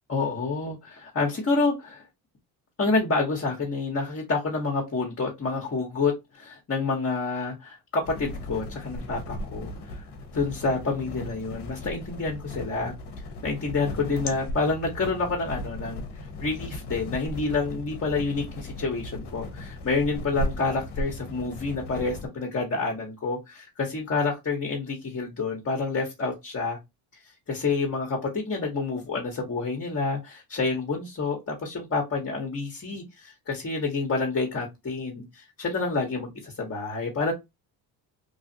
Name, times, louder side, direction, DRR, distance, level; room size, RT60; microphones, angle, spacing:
voice 1, 0.1-2.1 2.8-10.0 10.3-12.9 13.4-16.0 16.4-26.8 27.5-37.3, left 3 dB, 30° left, 1.2 m, -28 dB
sound 1, 8.0-22.3, left 1 dB, 55° left, 1.0 m, -36 dB
3.1 x 2.3 x 2.8 m
supercardioid pair, 70°, 48 cm